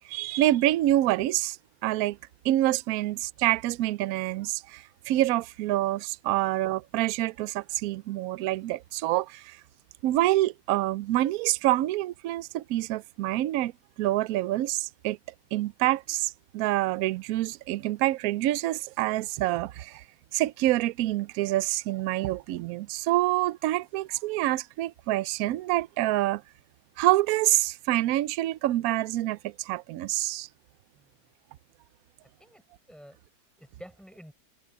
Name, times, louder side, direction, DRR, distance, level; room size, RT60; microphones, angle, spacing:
voice 1, 0.0-1.6 1.8-2.2 2.4-9.6 10.0-13.7 14.0-15.2 15.5-20.0 20.3-26.4 27.0-30.5, right 15 dB, 70° right, 0.9 m, -26 dB
voice 2, 32.4-34.3, equal, ahead, 7.2 m, -51 dB
omnidirectional pair, 1.8 m